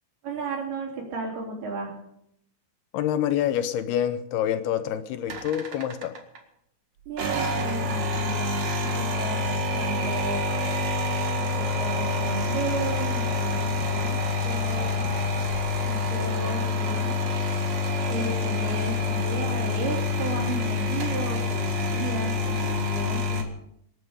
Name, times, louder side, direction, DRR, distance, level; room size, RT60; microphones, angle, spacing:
voice 1, 0.2-1.9 7.1-10.5 11.4-15.1 15.9-17.2 18.1-23.4, right 3 dB, 70° right, 0 dB, 5.3 m, -34 dB
voice 2, 2.9-6.2, left 10 dB, 80° left, 10 dB, 2.8 m, -27 dB
sound 1, 5.3-6.4 7.1-23.4, left 3 dB, 50° right, 2.6 m, -27 dB
26.0 x 9.7 x 5.1 m, 0.76 s
omnidirectional pair, 4.7 m